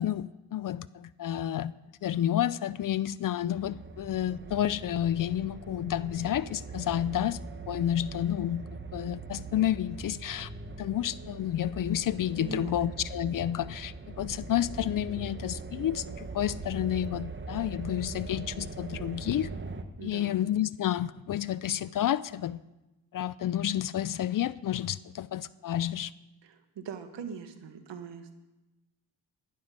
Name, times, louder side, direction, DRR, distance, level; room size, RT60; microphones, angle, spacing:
voice 1, 0.0-1.7 2.0-7.4 7.7-10.5 10.8-19.5 20.0-22.6 23.1-26.1, left 11 dB, 45° left, 19 dB, 0.4 m, -30 dB
sound 1, 3.6-19.8, right 4 dB, 25° right, 1.1 m, -41 dB
voice 2, 12.4-12.9 20.0-20.5 26.4-28.3, right 6 dB, 65° right, 8 dB, 1.6 m, -41 dB
12.0 x 11.0 x 5.3 m, 1.0 s
cardioid pair, 70°, 46 cm